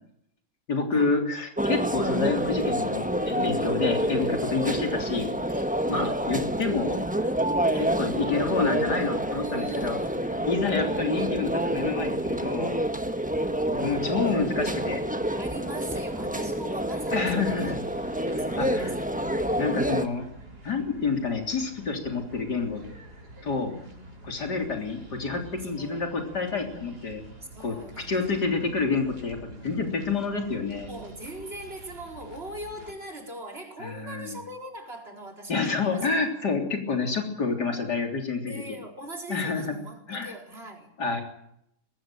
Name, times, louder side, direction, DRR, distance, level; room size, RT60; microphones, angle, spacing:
voice 1, 0.7-7.0 7.8-10.0 10.5-12.8 13.7-15.0 17.1-17.8 18.3-19.0 19.6-20.2 20.6-22.8 23.4-23.7 24.2-27.2 27.6-29.4 29.6-30.9 33.8-34.4 35.5-38.6 39.3-39.7 40.1-40.3 41.0-41.2, left 4 dB, 85° left, 4 dB, 4.1 m, -28 dB
sound 1, 1.6-20.1, right 1 dB, 5° right, 1.2 m, -28 dB
voice 2, 9.4-10.5 15.1-17.7 18.3-19.1 23.3-24.1 24.4-24.8 25.6-26.3 27.5-28.4 29.4-30.2 30.9-36.2 38.5-40.9, right 1 dB, 35° right, 2 dB, 4.6 m, -42 dB
sound 2, 17.4-32.9, right 1 dB, 75° right, 5.7 m, -47 dB
22.0 x 15.5 x 9.0 m, 0.76 s
omnidirectional pair, 1.7 m